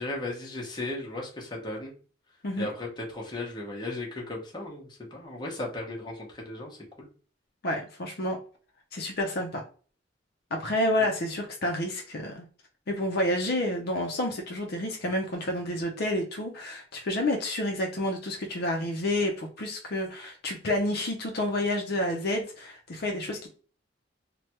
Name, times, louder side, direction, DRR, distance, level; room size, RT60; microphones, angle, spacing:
voice 1, 0.0-1.9 2.6-7.1, left 2 dB, 25° left, -1 dB, 0.8 m, -36 dB
voice 2, 7.6-8.4 8.9-9.6 10.5-12.5 12.9-23.5, left 1 dB, 55° left, 2 dB, 0.6 m, -29 dB
3.2 x 2.2 x 2.8 m, 0.40 s
head